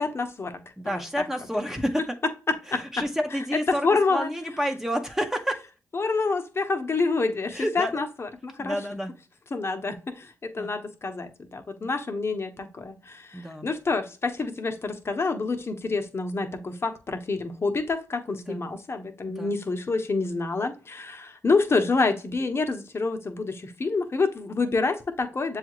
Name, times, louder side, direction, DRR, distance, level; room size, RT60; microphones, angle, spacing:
voice 1, 0.0-0.6 2.5-2.8 3.8-4.3 5.9-8.1 8.4-8.8 9.5-25.6, left 3 dB, 40° left, 0.9 m, -27 dB
voice 2, 0.8-2.2 2.7-5.6 7.5-8.0 8.6-9.1 10.6-10.7 11.8-11.9 13.3-13.7 18.4-18.6 19.3-19.6, equal, 5° right, 0.8 m, -30 dB
7.1 x 2.4 x 3.0 m
cardioid pair, 55°, 6 cm